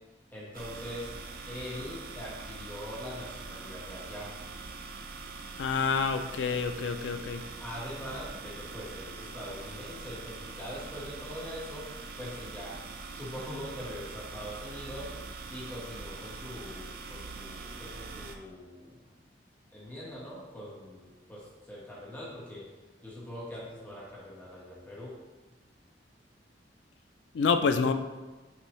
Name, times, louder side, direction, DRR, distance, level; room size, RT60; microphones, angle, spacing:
voice 1, 0.3-1.1 1.5-4.3 7.6-12.8 13.1-15.1 15.5-19.0 19.7-22.7 23.0-25.2, equal, 10° left, -7 dB, 1.4 m, -42 dB
sound 1, 0.5-18.4, right 4 dB, 55° right, 0.4 m, -43 dB
voice 2, 5.6-7.4 27.3-27.9, left 5 dB, 85° left, 7 dB, 0.4 m, -27 dB
6.0 x 2.7 x 3.1 m, 1.2 s
head